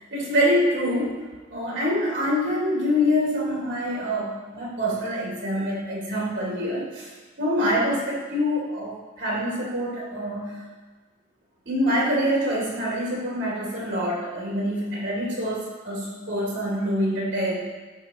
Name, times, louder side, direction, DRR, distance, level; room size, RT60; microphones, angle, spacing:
voice 1, 0.0-7.1 7.4-10.6 11.6-17.5, equal, 75° right, -5 dB, 2.8 m, -25 dB
13.0 x 5.4 x 3.0 m, 1.3 s
head